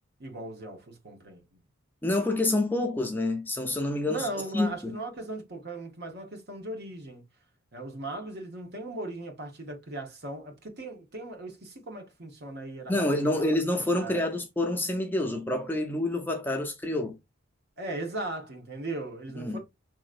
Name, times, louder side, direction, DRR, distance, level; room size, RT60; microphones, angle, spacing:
voice 1, 0.2-1.6 4.0-7.2 7.7-13.5 13.7-14.2 17.8-19.6, right 2 dB, 55° right, 1.1 m, -38 dB
voice 2, 2.0-5.0 12.9-17.2 19.4-19.6, left 1 dB, 10° left, 0.5 m, -28 dB
5.0 x 3.0 x 2.5 m
head